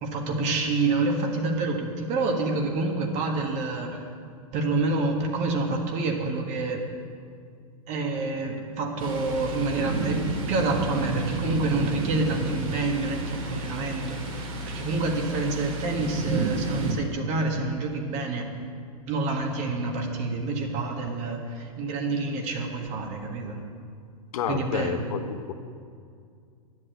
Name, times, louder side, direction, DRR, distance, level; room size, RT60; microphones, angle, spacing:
voice 1, 0.0-4.1 4.5-6.9 7.9-18.5 19.1-23.6 24.5-25.1, right 3 dB, 40° right, 2 dB, 1.8 m, -28 dB
Thunder, 9.0-16.9, right 3 dB, 65° right, 3.0 m, -31 dB
voice 2, 24.3-25.5, left 7 dB, 70° left, 8 dB, 1.1 m, -30 dB
9.9 x 7.8 x 7.9 m, 2.3 s
hypercardioid pair, 125°, 19 cm